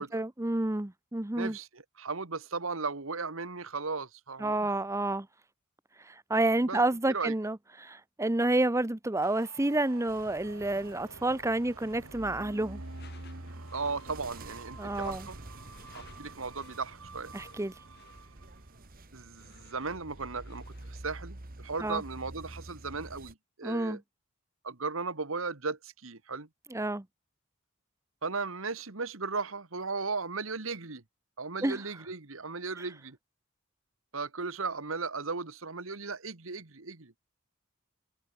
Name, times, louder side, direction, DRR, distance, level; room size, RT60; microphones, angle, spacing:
voice 1, 0.0-1.6 4.4-5.3 6.0-12.8 14.8-15.3 17.3-17.7 21.8-22.0 23.6-24.0 26.7-27.0 31.6-31.8, right 2 dB, 15° right, 0.7 m, -29 dB
voice 2, 1.4-4.7 6.6-6.8 7.1-7.3 13.7-15.4 15.9-17.3 19.1-24.0 24.6-26.5 28.2-31.0 31.4-33.2 34.1-37.1, right 4 dB, 70° right, 1.7 m, -36 dB
sound 1, 9.2-18.9, right 3 dB, 90° right, 4.4 m, -51 dB
sound 2, 10.1-23.3, right 1 dB, 45° right, 1.5 m, -48 dB
Door / Screech, 12.8-21.0, left 4 dB, 50° left, 7.3 m, -60 dB
head